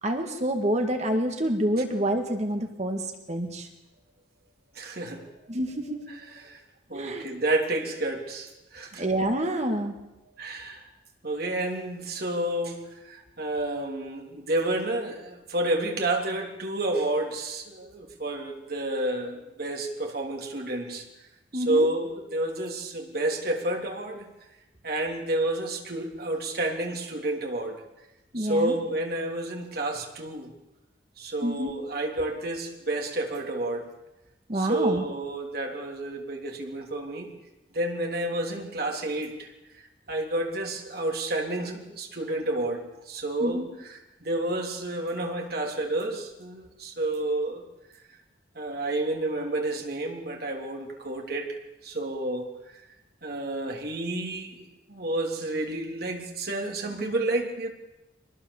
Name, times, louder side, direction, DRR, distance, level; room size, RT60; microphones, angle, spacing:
voice 1, 0.0-3.7 5.5-6.0 6.9-7.3 9.0-9.9 21.5-21.9 28.3-28.8 31.4-31.7 34.5-35.0 43.4-43.7, right 1 dB, 35° right, 4 dB, 2.0 m, -27 dB
voice 2, 4.7-5.2 6.1-6.6 6.9-9.0 10.4-10.8 11.2-21.0 21.5-24.3 24.8-27.8 28.3-30.6 31.2-33.9 34.5-37.3 37.7-39.5 40.1-47.6 48.5-51.6 51.8-52.5 53.2-57.7, right 1 dB, 55° right, 2 dB, 3.4 m, -30 dB
25.0 x 20.0 x 7.2 m, 0.97 s
head